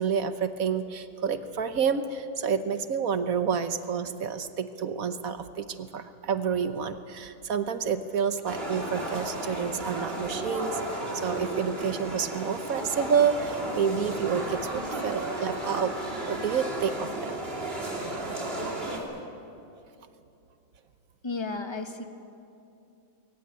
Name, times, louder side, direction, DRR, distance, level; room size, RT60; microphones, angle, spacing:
voice 1, 0.0-15.9 16.3-17.3, right 6 dB, 55° right, 10 dB, 1.2 m, -29 dB
sound 1, 8.5-19.0, right 1 dB, 30° right, 3.0 m, -34 dB
voice 2, 21.2-22.0, left 3 dB, 15° left, 7 dB, 1.1 m, -33 dB
21.5 x 19.0 x 8.9 m, 2.8 s
omnidirectional pair, 1.9 m